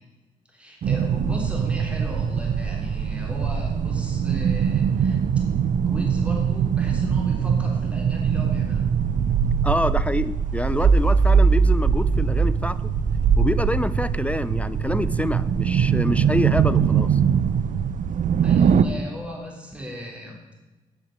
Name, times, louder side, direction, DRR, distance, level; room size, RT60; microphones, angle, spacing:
voice 1, 0.5-5.2 5.8-8.9 18.4-20.4, equal, 10° right, -1 dB, 3.6 m, -36 dB
sound 1, 0.8-18.8, right 6 dB, 65° right, 0.6 m, -21 dB
voice 2, 9.6-12.8 13.4-17.2, left 1 dB, 10° left, 15 dB, 0.4 m, -26 dB
8.1 x 7.3 x 8.3 m, 1.1 s
cardioid pair, 60°, 14 cm